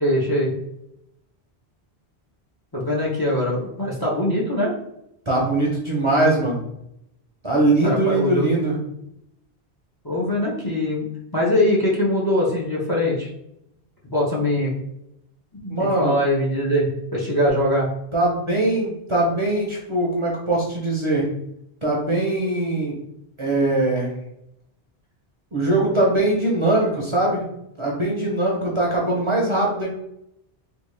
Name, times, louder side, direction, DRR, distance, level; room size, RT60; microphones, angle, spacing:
voice 1, 0.0-0.5 2.7-4.7 7.8-8.4 10.0-11.1 11.3-13.3 14.0-14.7 15.6-17.9, left 1 dB, 25° left, -3 dB, 0.6 m, -22 dB
voice 2, 5.3-6.6 7.4-8.8 15.7-16.2 18.1-21.3 21.8-22.9 23.4-24.1 25.5-27.4 27.8-29.9, right 2 dB, 35° right, -3 dB, 0.7 m, -21 dB
3.5 x 2.3 x 3.2 m, 0.79 s
omnidirectional pair, 1.1 m